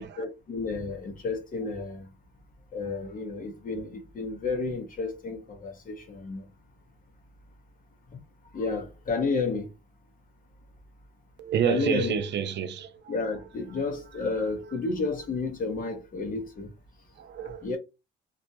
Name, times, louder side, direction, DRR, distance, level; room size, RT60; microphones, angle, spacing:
voice 1, 0.0-2.1 2.7-6.4 8.5-9.7 11.6-12.2 13.1-16.7 17.6-17.8, left 4 dB, 45° left, 0.9 m, -31 dB
voice 2, 11.4-12.9 17.2-17.7, right 8 dB, 60° right, 0.4 m, -28 dB
2.5 x 2.1 x 2.8 m
cardioid pair, 90°, 20 cm